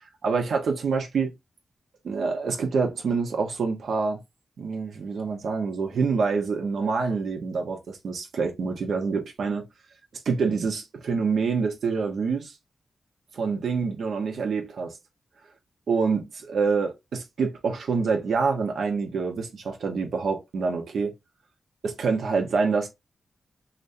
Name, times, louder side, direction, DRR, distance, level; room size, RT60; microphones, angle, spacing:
voice 1, 0.2-1.3 2.0-4.2 4.6-9.7 10.2-12.5 13.3-15.0 15.9-21.1 21.8-22.9, right 5 dB, 80° right, 0.9 m, -26 dB
5.2 x 2.2 x 2.6 m
wide cardioid pair, 170°, 0 cm